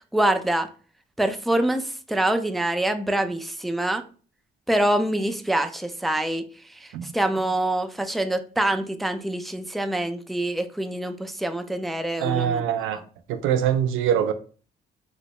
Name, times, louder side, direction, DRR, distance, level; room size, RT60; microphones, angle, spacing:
voice 1, 0.1-0.7 1.2-4.0 4.7-6.4 6.8-12.6 12.9-13.0, right 1 dB, ahead, 0.3 m, -25 dB
voice 2, 12.2-13.0 13.3-14.3, right 9 dB, 85° right, 0.4 m, -23 dB
3.1 x 2.7 x 3.0 m
cardioid pair, 90°, 20 cm